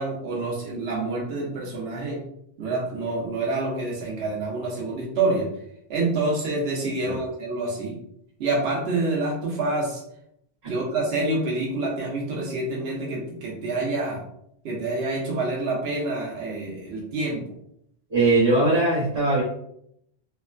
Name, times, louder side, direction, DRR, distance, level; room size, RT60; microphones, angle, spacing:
voice 1, 0.0-2.2 2.6-5.5 5.9-8.0 8.4-10.0 10.7-14.2 14.6-17.4, right 2 dB, 75° right, -3 dB, 0.9 m, -27 dB
voice 2, 18.1-19.4, right 2 dB, 40° right, -11 dB, 1.1 m, -20 dB
3.1 x 2.1 x 2.4 m, 0.73 s
omnidirectional pair, 1.1 m